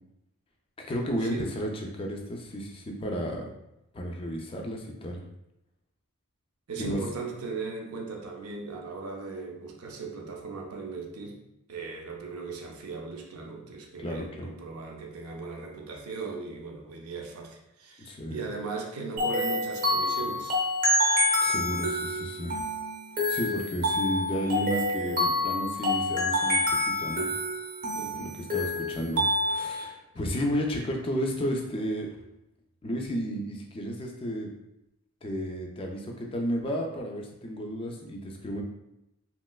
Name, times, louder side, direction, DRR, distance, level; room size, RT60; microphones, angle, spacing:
voice 1, 0.8-3.5 3.9-5.2 6.8-7.0 14.0-14.5 18.0-18.4 21.4-22.6 23.3-27.3 28.2-32.2 32.8-34.5 35.2-38.6, equal, 25° left, 2 dB, 0.3 m, -32 dB
voice 2, 6.7-11.4 11.7-20.6 27.9-28.4, right 4 dB, 80° right, 1 dB, 0.5 m, -38 dB
sound 1, 19.2-29.8, left 1 dB, 40° right, 0.7 m, -27 dB
3.1 x 2.9 x 2.2 m, 0.88 s
head